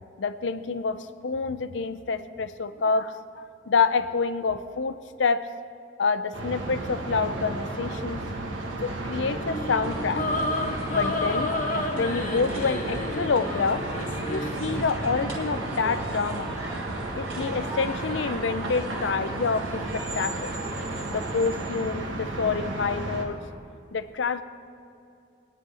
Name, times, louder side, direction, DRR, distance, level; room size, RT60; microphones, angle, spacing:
voice 1, 0.2-5.5 6.0-8.2 8.8-11.6 11.9-13.9 14.3-16.6 17.1-20.6 21.1-23.4 23.9-24.4, left 5 dB, 60° left, 13 dB, 0.5 m, -27 dB
sound 1, 6.3-23.2, right 2 dB, 70° right, 1.4 m, -33 dB
sound 2, 9.4-14.7, left 2 dB, 40° left, 1.3 m, -31 dB
sound 3, 9.8-21.7, right 1 dB, 15° right, 2.6 m, -41 dB
21.0 x 9.9 x 3.4 m, 2.6 s
head